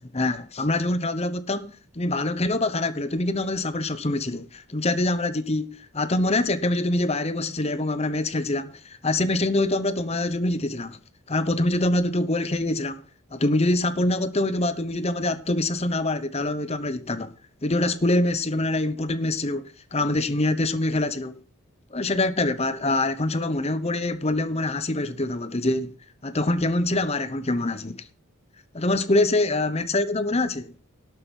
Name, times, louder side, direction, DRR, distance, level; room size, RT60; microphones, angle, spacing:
voice 1, 0.1-11.0 11.3-13.0 13.3-17.3 17.6-21.4 21.9-25.9 26.2-28.1 28.7-30.7, left 2 dB, 30° left, 0.9 m, -25 dB
12.0 x 8.2 x 5.4 m
head